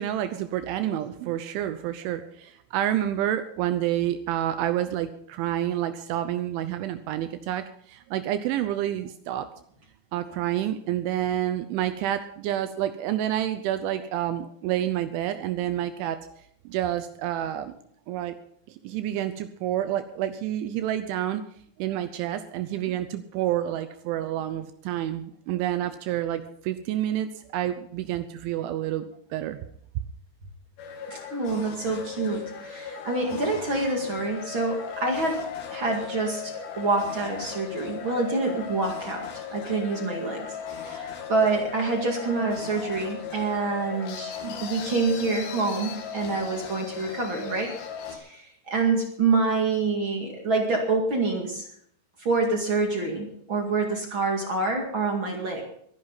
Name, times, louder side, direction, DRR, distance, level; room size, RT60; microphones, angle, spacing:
voice 1, 0.0-9.5 10.1-16.2 16.7-17.7 18.1-18.4 18.7-21.4 21.8-29.6 30.0-30.1, right 12 dB, 80° right, 10 dB, 3.1 m, -29 dB
sound 1, 30.8-48.2, left 7 dB, 75° left, 4.5 m, -37 dB
voice 2, 31.0-35.4 35.7-47.7 48.1-51.7 52.2-55.6, right 3 dB, 45° right, 1 dB, 1.7 m, -27 dB
23.0 x 11.0 x 4.0 m, 0.65 s
omnidirectional pair, 5.6 m